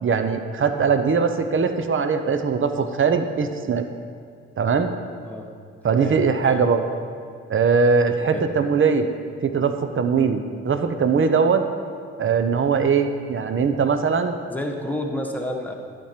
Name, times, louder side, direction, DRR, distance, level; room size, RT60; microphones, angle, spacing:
voice 1, 0.0-3.9 4.6-4.9 5.8-6.8 7.5-9.1 9.4-11.6 12.2-14.3, right 5 dB, 40° right, 8 dB, 0.8 m, -21 dB
voice 2, 5.8-6.6 8.1-8.5 14.5-15.7, left 1 dB, 5° left, 1 dB, 1.3 m, -30 dB
11.5 x 5.2 x 4.5 m, 2.2 s
hypercardioid pair, 45°, 33 cm